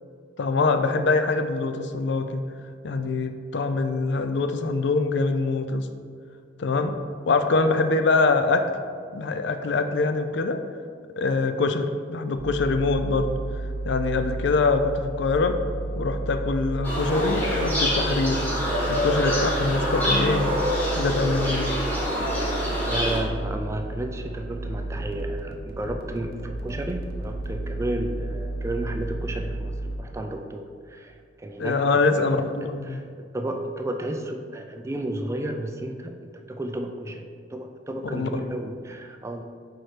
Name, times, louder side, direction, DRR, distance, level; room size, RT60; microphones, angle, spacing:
voice 1, 0.4-2.4 2.8-5.9 6.6-6.9 7.3-8.6 9.1-10.6 11.2-13.3 13.8-15.6 15.9-18.4 18.9-20.5 20.9-21.7 31.6-33.0 38.1-38.3, left 3 dB, 65° left, 7 dB, 0.4 m, -24 dB
sound 1, 12.4-30.0, right 2 dB, 55° right, 0.6 m, -32 dB
sound 2, 16.8-23.2, equal, 10° left, 1.4 m, -26 dB
voice 2, 22.8-39.4, right 1 dB, 15° right, 4 dB, 0.3 m, -33 dB
4.7 x 4.6 x 4.4 m, 2.1 s
head